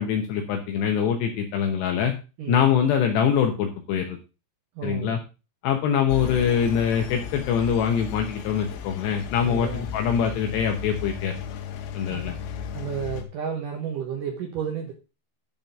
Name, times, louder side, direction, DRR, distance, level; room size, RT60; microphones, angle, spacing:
voice 1, 0.0-2.1 2.5-4.2 4.8-5.2 5.6-11.4 11.9-12.3, left 8 dB, 75° left, 3 dB, 2.9 m, -24 dB
voice 2, 4.8-5.2 9.4-9.9 12.1-12.3 12.7-14.9, right 8 dB, 80° right, 1 dB, 1.8 m, -32 dB
Engine, 6.1-13.2, left 8 dB, 90° left, 3.7 m, -35 dB
11.0 x 4.4 x 5.2 m, 0.31 s
omnidirectional pair, 5.5 m